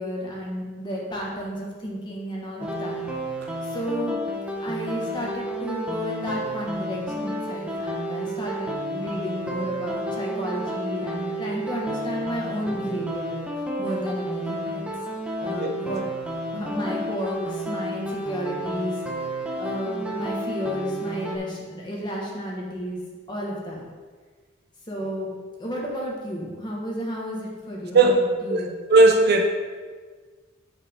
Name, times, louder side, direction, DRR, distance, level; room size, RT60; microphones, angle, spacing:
voice 1, 0.0-3.0 3.6-4.2 4.6-13.4 13.8-14.9 15.4-16.0 16.5-19.0 19.6-23.0 23.3-23.8 24.9-25.3 25.6-28.7, equal, 25° left, -3 dB, 1.8 m, -32 dB
sound 1, 2.6-21.4, right 1 dB, 5° right, 1.0 m, -31 dB
voice 2, 28.5-29.5, right 3 dB, 55° right, 4 dB, 0.8 m, -17 dB
8.1 x 7.5 x 3.8 m, 1.5 s
head